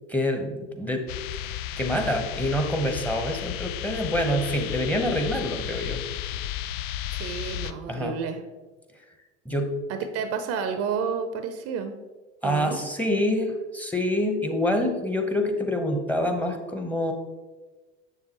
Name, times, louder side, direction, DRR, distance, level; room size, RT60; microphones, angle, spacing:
voice 1, 0.1-1.1 1.4-6.0 7.9-8.2 9.4-9.7 12.4-17.1, left 1 dB, 5° left, 5 dB, 1.0 m, -26 dB
sound 1, 1.1-7.7, left 12 dB, 60° left, 0.5 m, -33 dB
voice 2, 7.1-8.4 9.9-12.0 12.4-12.8, right 6 dB, 45° right, 9 dB, 0.7 m, -30 dB
7.3 x 6.8 x 3.0 m, 1.2 s
hypercardioid pair, 75°, 34 cm